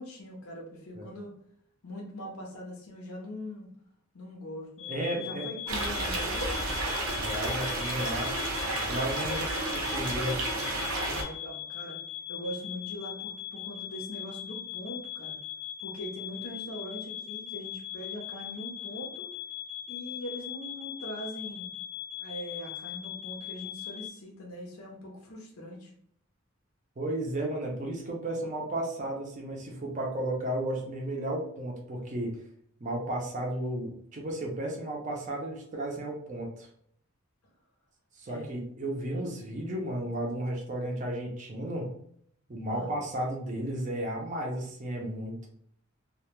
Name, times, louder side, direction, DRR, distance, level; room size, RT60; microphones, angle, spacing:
voice 1, 0.0-1.3 1.8-3.7 4.1-6.8 9.3-9.5 10.9-12.0 12.3-15.4 15.8-19.3 19.9-21.7 22.2-25.9 38.3-38.6 42.7-42.9, equal, 85° left, -1 dB, 0.6 m, -41 dB
sound 1, 4.8-24.1, left 12 dB, 30° left, 0.3 m, -40 dB
voice 2, 4.9-5.5 7.2-8.4 8.9-9.5 9.7-10.4 27.0-32.3 32.8-36.7 38.2-41.9 42.5-45.5, right 1 dB, 35° right, -1 dB, 0.4 m, -33 dB
sound 2, 5.7-11.2, right 2 dB, 80° right, 0.7 m, -31 dB
2.1 x 2.1 x 2.9 m, 0.66 s
head